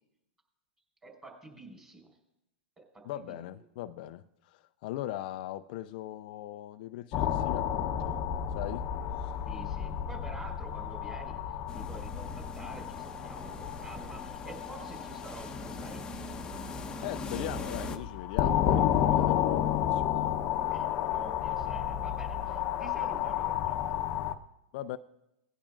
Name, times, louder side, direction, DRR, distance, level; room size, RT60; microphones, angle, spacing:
voice 1, 1.0-2.0 2.8-3.0 9.4-11.4 11.7-16.0 20.7-24.0, right 2 dB, 10° right, 1 dB, 4.7 m, -48 dB
voice 2, 3.0-8.2 8.5-8.9 9.2-9.3 17.0-20.3 24.7-25.0, left 14 dB, 55° left, 11 dB, 0.4 m, -40 dB
sound 1, 7.1-24.3, left 10 dB, 40° left, 0.8 m, -32 dB
sound 2, 11.7-18.0, left 2 dB, 15° left, 1.0 m, -42 dB
19.0 x 10.0 x 2.5 m, 0.85 s
hypercardioid pair, 125°, 6 cm